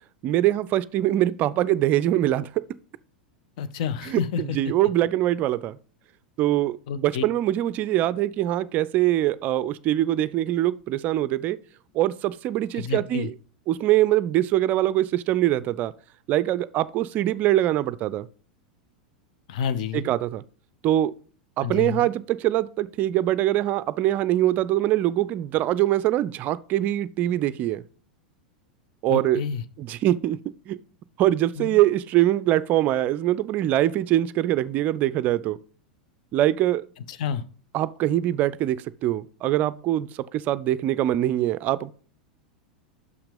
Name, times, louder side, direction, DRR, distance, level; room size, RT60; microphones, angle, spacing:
voice 1, 0.2-2.5 4.1-5.8 6.4-11.6 12.0-13.3 13.7-15.9 16.3-18.3 19.9-20.4 20.8-21.1 21.6-27.8 29.0-29.4 29.9-30.4 30.7-30.8 31.2-35.6 36.3-36.8 37.7-38.8 39.0-41.9, right 14 dB, 40° right, 0.4 m, -23 dB
voice 2, 3.6-4.7 6.9-7.2 12.7-13.3 19.5-20.1 21.6-22.1 29.1-29.6 31.6-31.8 37.1-37.4, left 7 dB, 55° left, 0.7 m, -29 dB
6.2 x 5.8 x 5.2 m
figure-of-eight pair, 90°, 5 cm